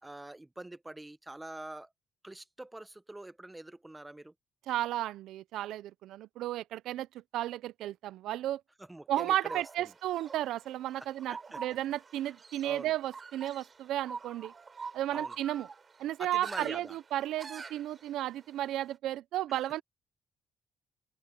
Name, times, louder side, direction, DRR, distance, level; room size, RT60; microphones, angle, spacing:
voice 1, 0.0-1.9 2.2-4.3 8.8-9.9 11.0-11.6 12.6-12.9 15.1-15.4 16.2-17.0 19.5-19.7, right 2 dB, 10° right, 0.7 m, -45 dB
voice 2, 4.7-7.1 7.3-8.6 9.1-14.5 14.9-15.7 16.0-19.8, right 13 dB, 75° right, 0.4 m, -33 dB
sound 1, 9.4-18.9, right 5 dB, 25° right, 3.4 m, -47 dB
cardioid pair, 175°, 0 cm